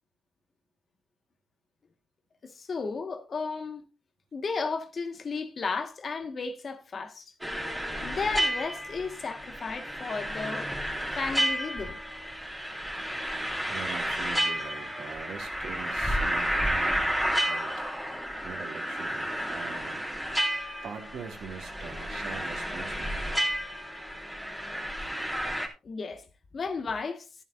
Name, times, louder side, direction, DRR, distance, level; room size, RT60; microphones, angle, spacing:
voice 1, 2.4-3.9 4.3-7.3 8.0-10.7 11.1-12.0 25.8-26.3 26.5-27.3, left 4 dB, 40° left, 1.8 m, -34 dB
sound 1, 7.4-25.7, equal, ahead, 3.4 m, -31 dB
voice 2, 13.3-17.1 17.4-17.8 18.4-20.0 20.8-23.3, right 6 dB, 70° right, 2.9 m, -43 dB
13.0 x 11.0 x 2.7 m
cardioid pair, 90°, 0 cm